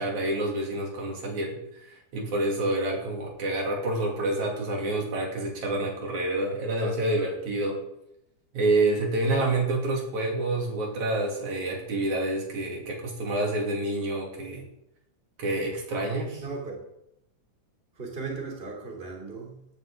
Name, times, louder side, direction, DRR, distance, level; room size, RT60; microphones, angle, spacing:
voice 1, 0.0-7.8 8.5-14.6 15.4-16.4, right 2 dB, 65° right, -1 dB, 3.9 m, -28 dB
voice 2, 16.4-16.7 17.9-19.7, right 4 dB, 20° right, 0 dB, 2.9 m, -36 dB
17.5 x 10.5 x 3.7 m, 0.81 s
omnidirectional pair, 3.6 m